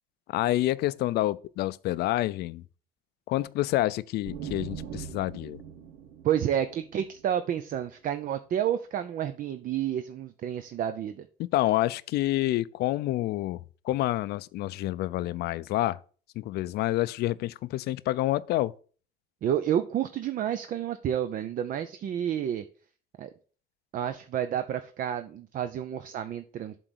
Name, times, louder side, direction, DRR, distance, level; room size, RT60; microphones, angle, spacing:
voice 1, 0.3-2.6 3.3-5.6 11.4-16.0 16.4-18.7, left 16 dB, 75° left, 0.4 m, -28 dB
sound 1, 4.2-7.9, right 8 dB, 80° right, 1.0 m, -42 dB
voice 2, 6.2-11.3 19.4-22.6 23.2-23.3 23.9-26.8, right 10 dB, 55° right, 0.6 m, -30 dB
7.7 x 4.0 x 6.2 m
cardioid pair, 110°, 17 cm